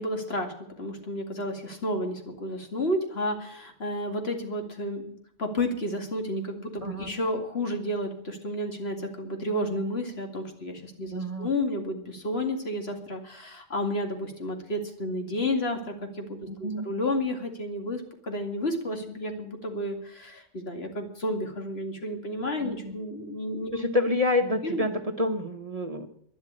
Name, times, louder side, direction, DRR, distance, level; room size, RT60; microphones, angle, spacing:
voice 1, 0.0-5.1 5.4-23.8 24.6-24.8, left 1 dB, 55° left, 4 dB, 2.5 m, -31 dB
voice 2, 6.8-7.1 11.1-11.5 16.5-16.8 22.6-22.9 23.7-26.1, left 2 dB, 30° right, 5 dB, 1.2 m, -28 dB
12.0 x 11.0 x 8.8 m, 0.68 s
omnidirectional pair, 1.3 m